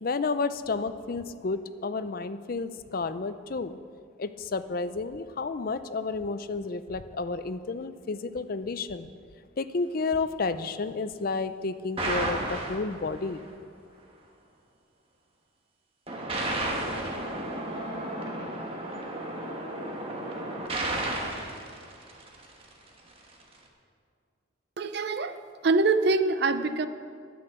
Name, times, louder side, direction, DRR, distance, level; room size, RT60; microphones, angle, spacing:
voice 1, 0.0-3.8 4.2-9.1 9.6-13.4, left 4 dB, 45° left, 12 dB, 0.5 m, -31 dB
sound 1, 12.0-13.4 16.1-22.6, right 1 dB, 30° right, 1.3 m, -33 dB
voice 2, 24.8-26.9, right 3 dB, 55° right, 11 dB, 0.5 m, -25 dB
10.5 x 10.0 x 6.8 m, 2.2 s
head